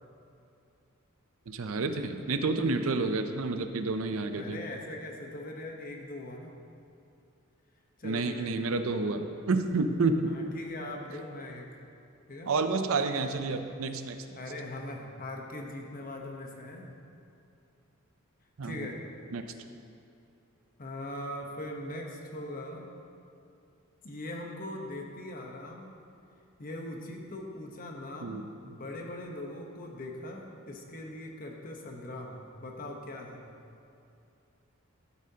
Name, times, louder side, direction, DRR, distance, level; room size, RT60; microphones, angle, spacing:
voice 1, 1.5-4.6 8.0-10.3 12.5-14.2 18.6-18.9 19.3-19.5 28.2-28.5, right 3 dB, 70° right, 8 dB, 0.5 m, -29 dB
voice 2, 4.3-6.5 8.0-8.5 10.3-11.7 12.3-12.5 14.3-16.9 18.6-19.0 20.8-22.8 24.0-25.9 26.6-33.4, left 1 dB, 40° left, 1 dB, 1.0 m, -41 dB
13.0 x 8.4 x 2.8 m, 2.6 s
head